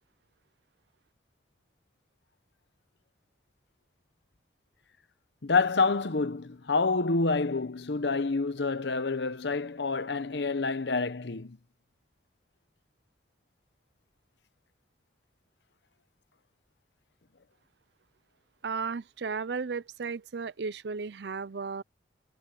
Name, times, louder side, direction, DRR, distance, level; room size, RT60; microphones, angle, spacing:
voice 1, 5.4-11.6, left 4 dB, 70° left, 1.0 m, -28 dB
voice 2, 18.6-21.8, right 5 dB, 65° right, 0.5 m, -34 dB
head